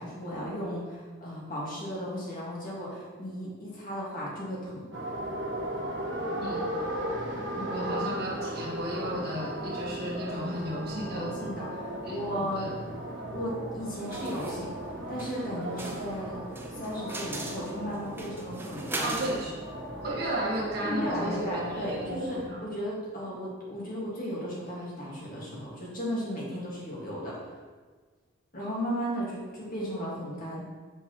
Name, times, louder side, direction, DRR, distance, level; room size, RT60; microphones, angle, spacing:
voice 1, 0.0-4.8 7.5-7.9 11.1-12.7 13.3-14.7 15.1-16.4 16.7-19.2 20.8-27.5 28.5-30.7, equal, 45° left, -6 dB, 1.8 m, -35 dB
sound 1, 4.9-22.5, equal, 70° right, 1.3 m, -37 dB
Wind instrument woodwind instrument, 7.0-11.8, equal, 60° left, 0.9 m, -44 dB
voice 2, 7.7-11.3 12.0-12.7 19.0-19.5 20.0-22.6, right 1 dB, 50° right, -5 dB, 1.5 m, -34 dB
sound 2, 14.1-14.6 15.2-15.4 15.8-19.4, right 2 dB, 10° right, 0.5 m, -39 dB
6.6 x 5.6 x 3.0 m, 1.4 s
head